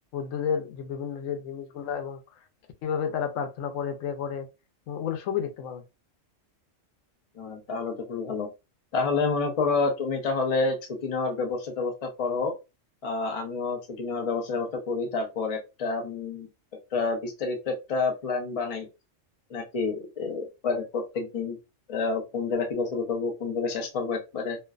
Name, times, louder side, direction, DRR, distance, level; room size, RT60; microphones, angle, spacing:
voice 1, 0.1-2.2 2.8-4.5 4.9-5.8, left 7 dB, 85° left, 1.0 m, -31 dB
voice 2, 7.4-8.5 8.9-10.8 11.0-12.5 13.0-16.5 16.9-18.9 19.5-21.6 21.9-24.6, left 4 dB, 40° left, 0.5 m, -29 dB
2.5 x 2.1 x 2.3 m
omnidirectional pair, 1.3 m